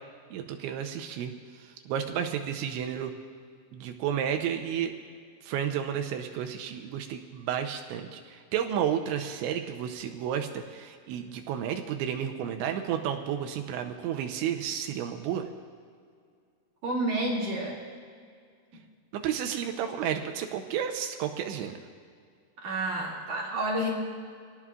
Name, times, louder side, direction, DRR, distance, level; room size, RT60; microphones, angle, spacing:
voice 1, 0.3-3.1 3.7-4.9 5.4-15.5 19.1-21.8, right 9 dB, 80° right, 5 dB, 3.0 m, -32 dB
voice 2, 16.8-17.8 22.6-23.9, right 1 dB, 50° right, -4 dB, 2.9 m, -30 dB
27.0 x 18.0 x 2.4 m, 2.1 s
omnidirectional pair, 5.6 m